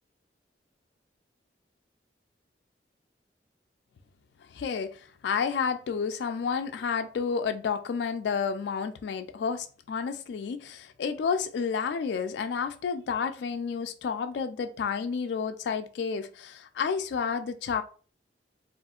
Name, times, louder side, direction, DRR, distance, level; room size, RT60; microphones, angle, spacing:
voice 1, 4.5-17.8, left 6 dB, 70° left, 0.3 m, -30 dB
3.5 x 2.4 x 2.3 m
head